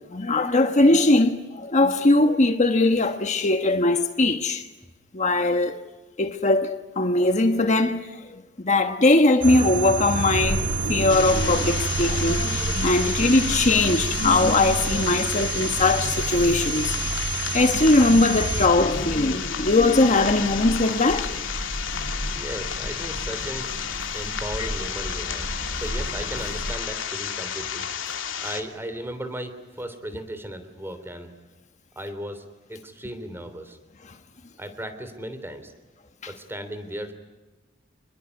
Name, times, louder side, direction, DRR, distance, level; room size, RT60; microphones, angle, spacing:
voice 1, 0.1-4.7 5.1-5.8 6.2-6.7 7.0-10.6 10.9-17.0 17.5-21.3 24.6-24.7 36.2-36.3, left 2 dB, 40° left, 1.3 m, -20 dB
sound 1, 9.4-18.7, right 5 dB, 75° right, 1.9 m, -29 dB
sound 2, 10.4-26.7, equal, 55° left, 4.7 m, -33 dB
sound 3, 11.1-28.6, left 8 dB, 90° left, 2.8 m, -32 dB
voice 2, 22.3-23.7 24.1-27.9 28.4-31.3 31.9-33.8 34.6-35.7 36.3-37.1, right 1 dB, 10° right, 3.2 m, -36 dB
28.0 x 21.0 x 9.5 m
head